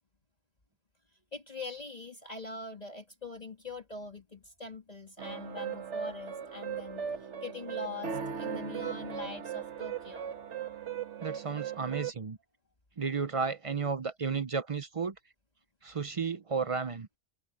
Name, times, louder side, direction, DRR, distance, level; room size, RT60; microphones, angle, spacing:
voice 1, 1.3-10.3, left 3 dB, 35° left, 2.3 m, -43 dB
sound 1, 5.2-12.1, right 8 dB, 80° right, 1.5 m, -38 dB
voice 2, 11.2-12.4 13.0-15.1 15.8-17.1, right 5 dB, 40° right, 0.5 m, -33 dB
omnidirectional pair, 1.2 m